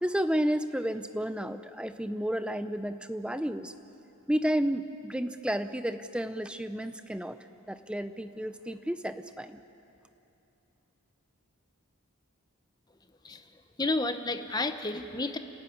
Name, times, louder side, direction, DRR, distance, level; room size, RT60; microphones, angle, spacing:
voice 1, 0.0-3.7 4.3-7.4 7.7-9.6, equal, 5° right, 10 dB, 0.6 m, -31 dB
voice 2, 13.8-15.4, left 2 dB, 20° left, 8 dB, 0.9 m, -31 dB
29.5 x 13.5 x 9.5 m, 2.9 s
head